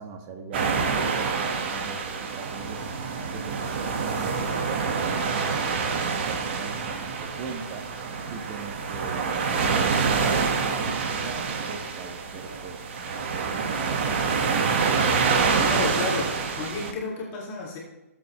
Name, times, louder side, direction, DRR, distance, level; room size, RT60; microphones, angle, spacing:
voice 1, 0.0-9.3 9.5-15.1, right 4 dB, 30° right, 3 dB, 1.5 m, -41 dB
sound 1, 0.5-16.9, right 5 dB, 45° right, 1.7 m, -26 dB
voice 2, 15.5-17.8, left 3 dB, 25° left, -4 dB, 2.4 m, -32 dB
18.0 x 7.9 x 3.3 m, 1.0 s
hypercardioid pair, 145°, 8 cm